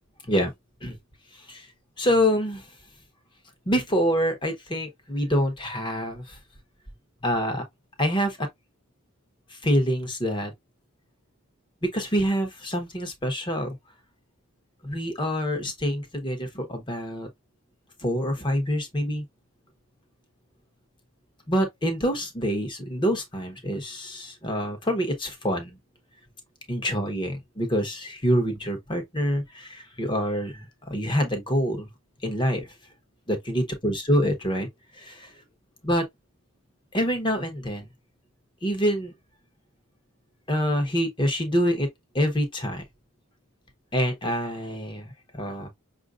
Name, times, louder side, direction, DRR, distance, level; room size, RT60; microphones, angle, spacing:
voice 1, 1.3-1.7 2.0-2.7 3.7-6.4 7.2-7.6 8.0-8.5 9.5-10.5 11.8-13.8 14.8-17.3 18.0-19.2 21.5-25.8 26.7-31.9 32.2-32.7 33.3-34.7 34.9-35.3 35.8-36.0 36.9-37.9 38.6-39.1 40.5-41.9 42.1-42.8 43.9-45.7, equal, 20° left, 0.9 m, -26 dB
5.7 x 2.5 x 2.4 m
head